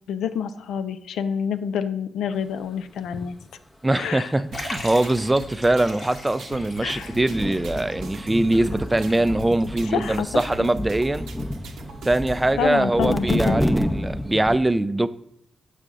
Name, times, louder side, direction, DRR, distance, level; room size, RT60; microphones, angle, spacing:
voice 1, 0.1-3.4 3.9-4.3 6.8-7.1 9.9-10.7 12.6-13.6, left 8 dB, 85° left, 11 dB, 0.3 m, -28 dB
voice 2, 3.8-11.3 12.0-15.1, right 1 dB, 20° right, 14 dB, 0.4 m, -22 dB
Liquid, 4.5-9.6 9.9-10.0 10.9-11.0, left 2 dB, 70° left, 1.4 m, -40 dB
sound 1, 4.5-12.5, right 3 dB, 85° right, 0.6 m, -41 dB
sound 2, 6.4-6.5 7.0-14.6, equal, 15° left, 0.7 m, -29 dB
6.5 x 5.0 x 3.6 m, 0.75 s
supercardioid pair, 40°, 0 cm